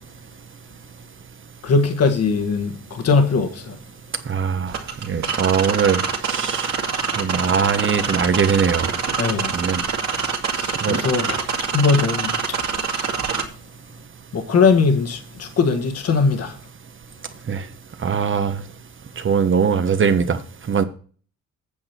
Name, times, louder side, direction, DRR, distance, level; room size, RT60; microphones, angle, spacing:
voice 1, 1.6-3.7 9.2-9.5 10.5-11.4 11.7-12.3 14.3-16.5, left 4 dB, 55° left, 1.6 m, -20 dB
voice 2, 4.3-4.7 5.1-6.7 7.2-8.9 9.5-9.8 10.8-11.0 17.5-17.6 18.0-18.6 19.2-20.4 20.7-20.8, right 6 dB, 40° right, 1.2 m, -21 dB
sound 1, 4.7-13.4, right 6 dB, 65° right, 2.3 m, -25 dB
8.7 x 7.5 x 4.4 m
cardioid pair, 90°, 30 cm